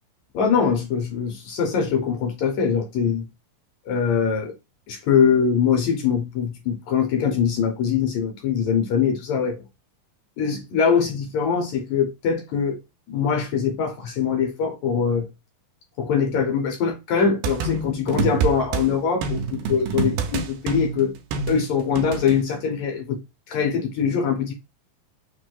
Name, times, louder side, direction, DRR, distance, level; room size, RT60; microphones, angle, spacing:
voice 1, 0.3-3.3 3.8-4.5 4.9-9.7 10.4-12.8 13.1-15.3 16.0-21.1 21.5-23.2 23.5-24.5, left 6 dB, 75° left, 1.7 m, -22 dB
sound 1, 17.4-18.8 19.2-22.3, right 5 dB, 90° right, 2.4 m, -26 dB
6.0 x 2.6 x 2.3 m
omnidirectional pair, 4.0 m